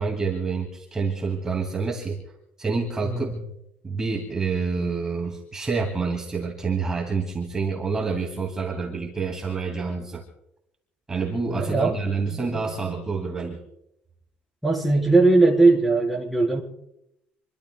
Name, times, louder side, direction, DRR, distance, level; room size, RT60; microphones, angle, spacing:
voice 1, 0.0-2.2 2.6-3.3 3.8-10.2 11.1-13.6, right 4 dB, 15° right, -1 dB, 2.4 m, -27 dB
voice 2, 3.0-3.3 11.5-12.0 14.6-16.6, right 3 dB, ahead, -2 dB, 3.9 m, -19 dB
27.5 x 22.5 x 2.3 m, 0.82 s
cardioid pair, 165°, 4 cm